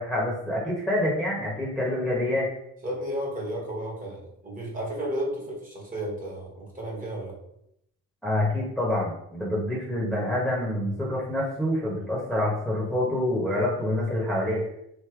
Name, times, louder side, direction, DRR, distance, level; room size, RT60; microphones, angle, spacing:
voice 1, 0.0-2.5 8.2-14.6, left 1 dB, ahead, -6 dB, 1.3 m, -27 dB
voice 2, 2.8-7.4, right 1 dB, 25° right, -3 dB, 1.6 m, -33 dB
3.4 x 2.9 x 4.6 m, 0.78 s
cardioid pair, 100°, 32 cm